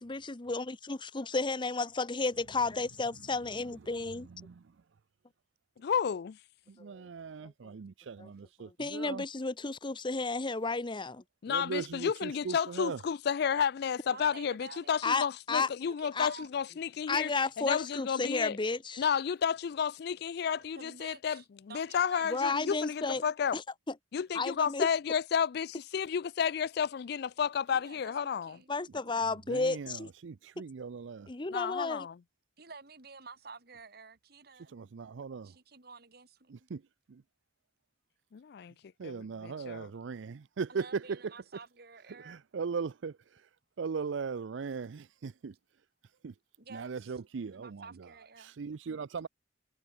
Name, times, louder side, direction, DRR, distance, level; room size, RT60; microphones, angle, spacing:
voice 1, 0.0-4.3 6.8-7.0 8.2-8.3 8.6-11.2 15.0-15.7 16.2-16.3 17.1-19.0 22.3-23.2 23.5-23.6 24.3-24.9 28.7-30.1 31.3-32.1, left 3 dB, 25° left, 0.8 m, -32 dB
voice 2, 4.1-4.8 6.7-9.3 11.5-13.0 29.3-31.3 34.5-35.6 36.5-36.8 37.1-37.2 39.0-41.3 42.1-43.5 43.8-45.6 46.2-46.3 46.7-48.1 48.4-49.3, right 5 dB, 80° right, 0.5 m, -39 dB
voice 3, 5.8-6.4 11.4-17.3 17.6-18.6 19.0-23.6 24.1-28.6 31.5-32.2 38.3-38.7 39.0-39.9, left 7 dB, 60° left, 0.4 m, -32 dB
voice 4, 14.1-15.0 15.5-16.5 20.5-21.4 21.7-23.0 27.7-28.8 32.6-34.7 35.4-36.7 40.7-42.4 46.6-47.2 47.4-48.5, right 4 dB, 55° right, 3.0 m, -51 dB
head